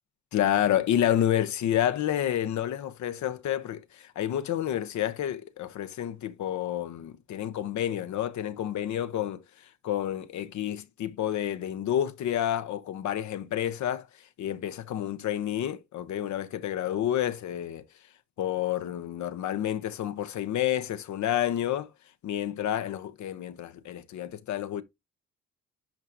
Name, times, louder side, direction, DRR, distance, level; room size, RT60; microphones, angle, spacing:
voice 1, 0.3-17.8 18.4-21.9 22.2-24.8, left 11 dB, 70° left, 0.8 m, -29 dB
11.0 x 4.8 x 2.6 m
cardioid pair, 90°, 30 cm